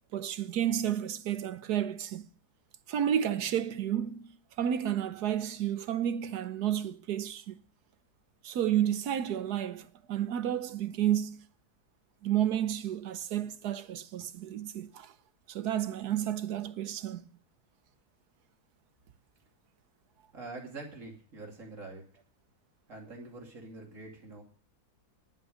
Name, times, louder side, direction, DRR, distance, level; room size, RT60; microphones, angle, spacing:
voice 1, 0.1-2.3 2.9-7.6 8.4-11.4 12.2-15.1 15.5-17.2, right 10 dB, 70° right, 1.4 m, -31 dB
voice 2, 20.3-22.1 22.9-24.4, right 3 dB, 50° right, 3.1 m, -45 dB
10.5 x 9.2 x 6.4 m
omnidirectional pair, 1.7 m